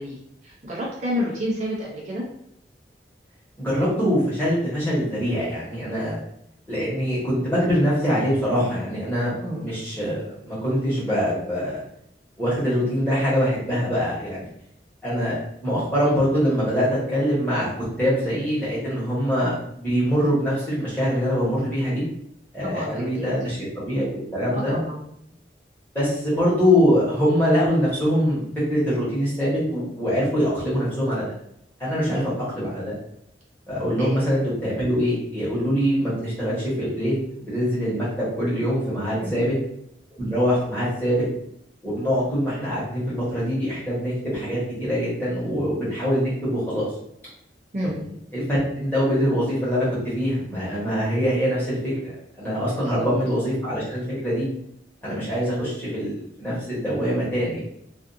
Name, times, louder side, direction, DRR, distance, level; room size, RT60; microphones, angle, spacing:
voice 1, 0.0-2.3 9.4-9.7 22.6-23.3 24.5-25.0 32.1-32.3 34.0-34.2 39.2-39.4 47.7-48.0 52.8-53.1, equal, 40° right, -4 dB, 0.5 m, -30 dB
voice 2, 3.6-6.2 6.7-11.8 12.4-14.4 15.0-15.4 15.6-17.7 18.0-22.0 22.5-24.8 25.9-28.4 28.7-31.3 31.8-32.9 33.7-37.1 37.4-39.5 40.2-41.2 41.8-46.9 48.3-49.9 50.1-54.4 55.0-57.6, equal, 10° left, -10 dB, 1.1 m, -23 dB
2.5 x 2.4 x 2.5 m, 0.74 s
head